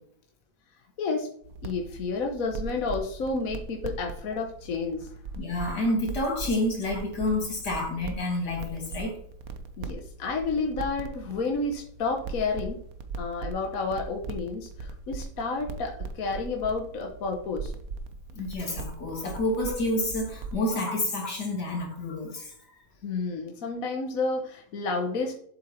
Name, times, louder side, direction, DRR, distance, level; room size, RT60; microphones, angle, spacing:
voice 1, 1.0-1.3 1.6-5.1 9.8-12.8 13.2-17.7 23.0-25.4, left 4 dB, 60° left, 3 dB, 1.4 m, -30 dB
sound 1, 1.4-20.7, right 3 dB, 60° right, 1.3 m, -40 dB
voice 2, 5.4-9.2 18.3-22.5, left 1 dB, 80° left, -1 dB, 3.3 m, -29 dB
7.6 x 7.2 x 4.5 m, 0.66 s
omnidirectional pair, 1.7 m